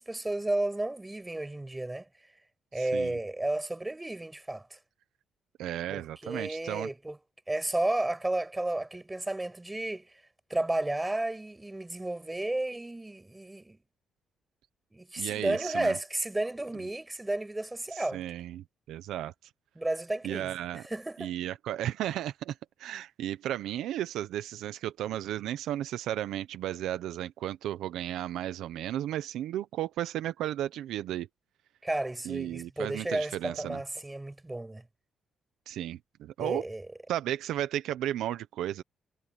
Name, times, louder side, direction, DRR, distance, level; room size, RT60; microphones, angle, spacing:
voice 1, 0.0-2.1 2.7-4.8 5.9-7.2 7.5-10.1 10.5-13.8 14.9-18.2 19.8-21.3 31.8-34.8 36.4-36.9, right 2 dB, 15° right, 7.3 m, -32 dB
voice 2, 2.8-3.1 5.6-6.9 15.2-16.0 17.9-19.3 20.2-20.8 21.2-31.3 32.2-33.8 35.7-36.6 37.1-38.8, right 12 dB, 85° right, 1.0 m, -34 dB
cardioid pair, 90°, 0 cm